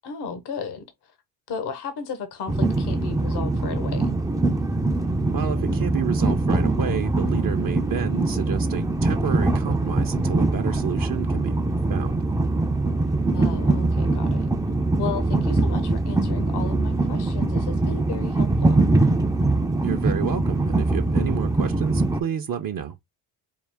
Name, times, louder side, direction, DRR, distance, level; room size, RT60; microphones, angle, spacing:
voice 1, 0.0-1.1 1.5-4.1 13.3-14.5 15.0-18.8, left 5 dB, 65° left, 1.0 m, -34 dB
Train, 2.5-22.2, right 2 dB, 10° right, 0.4 m, -22 dB
voice 2, 5.3-11.5 11.9-12.2 19.8-22.9, right 8 dB, 50° right, 0.7 m, -30 dB
4.7 x 2.4 x 3.4 m
cardioid pair, 95°, 43 cm